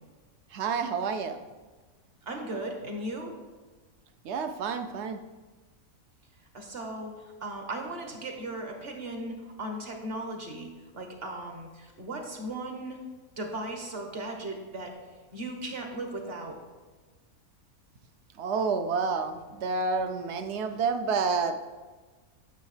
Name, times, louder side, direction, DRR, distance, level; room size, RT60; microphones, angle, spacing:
voice 1, 0.5-1.4 4.2-5.2 18.4-21.5, right 4 dB, 65° right, 8 dB, 0.7 m, -29 dB
voice 2, 2.3-3.3 6.5-13.0 13.4-14.9 15.3-16.6, right 1 dB, 45° right, 3 dB, 1.2 m, -37 dB
9.2 x 6.6 x 3.3 m, 1.3 s
omnidirectional pair, 1.5 m